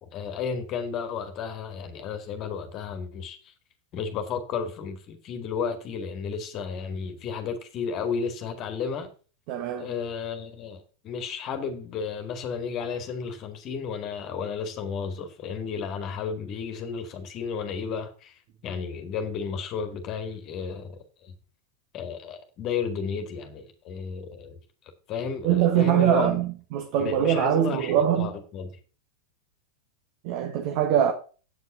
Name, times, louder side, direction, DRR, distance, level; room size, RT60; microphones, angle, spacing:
voice 1, 0.0-3.5 3.9-9.1 9.8-21.3 21.9-24.6 25.1-26.4 27.0-28.7, left 6 dB, 35° left, 1.9 m, -33 dB
voice 2, 9.5-9.9 25.4-28.3 30.2-31.1, right 10 dB, 45° right, 1.4 m, -23 dB
8.9 x 8.4 x 5.6 m
figure-of-eight pair, 90°, 0 cm